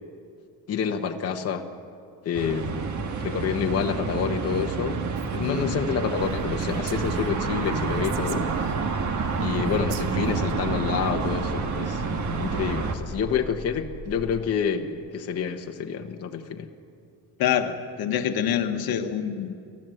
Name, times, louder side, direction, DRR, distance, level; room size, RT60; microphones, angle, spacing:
voice 1, 0.7-1.7 2.2-2.9 3.2-5.0 5.3-8.5 9.4-12.0 12.4-16.7, left 7 dB, 40° left, 3 dB, 1.1 m, -28 dB
sound 1, 2.3-13.0, right 5 dB, 50° right, 1.6 m, -29 dB
Female speech woman speaking, 5.2-5.8 6.2-6.3 6.6-8.9 9.6-10.5, right 7 dB, 75° right, 1.5 m, -37 dB
voice 2, 5.4-5.8 17.4-19.5, left 9 dB, 65° left, 7 dB, 1.3 m, -26 dB
sound 2, 6.2-14.5, left 2 dB, 30° right, 1.9 m, -40 dB
30.0 x 14.0 x 7.8 m, 2.5 s
cardioid pair, 155°, 39 cm